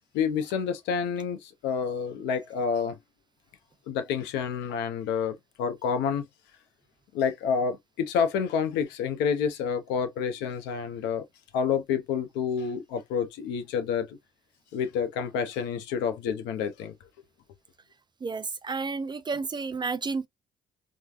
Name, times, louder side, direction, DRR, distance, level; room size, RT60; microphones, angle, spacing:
voice 1, 0.1-3.0 3.9-6.3 7.1-11.2 11.5-14.2 14.7-16.9, left 7 dB, 70° left, 0.6 m, -28 dB
voice 2, 18.2-20.3, right 4 dB, 25° right, 0.4 m, -31 dB
3.2 x 2.1 x 2.3 m
hypercardioid pair, 50°, 19 cm